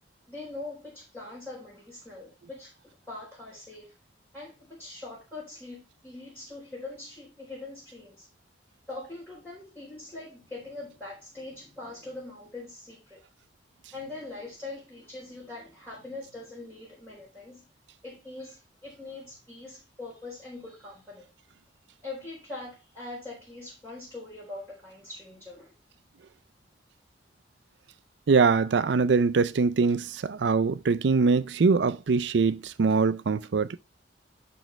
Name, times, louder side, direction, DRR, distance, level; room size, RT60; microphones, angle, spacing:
voice 1, 0.3-3.9 4.3-8.3 8.9-13.2 13.9-17.7 18.0-21.3 22.0-25.7, left 2 dB, 10° left, 3.9 m, -42 dB
voice 2, 28.3-33.8, right 4 dB, 70° right, 0.5 m, -23 dB
10.5 x 4.5 x 3.2 m
head